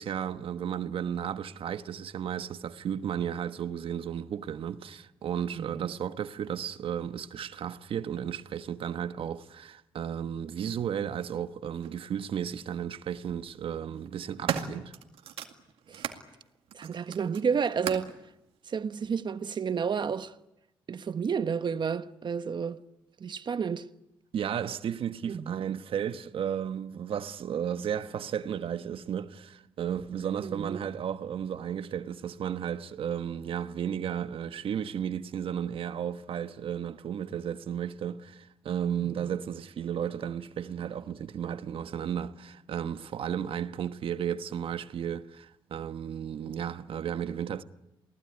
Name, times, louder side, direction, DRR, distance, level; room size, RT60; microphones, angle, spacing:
voice 1, 0.0-14.9 24.3-47.6, right 8 dB, 70° right, 1.2 m, -34 dB
voice 2, 5.6-5.9 15.9-16.1 16.7-18.1 18.7-20.3 20.9-22.8 23.2-23.9 25.3-25.7 30.4-30.9 39.0-39.3, right 6 dB, 55° right, 1.2 m, -31 dB
sound 1, 11.8-11.9 13.0-13.4 13.9-16.2 16.7-18.2 19.0-19.1, right 9 dB, 90° right, 2.2 m, -37 dB
28.5 x 18.5 x 9.8 m
cardioid pair, 70°, 10 cm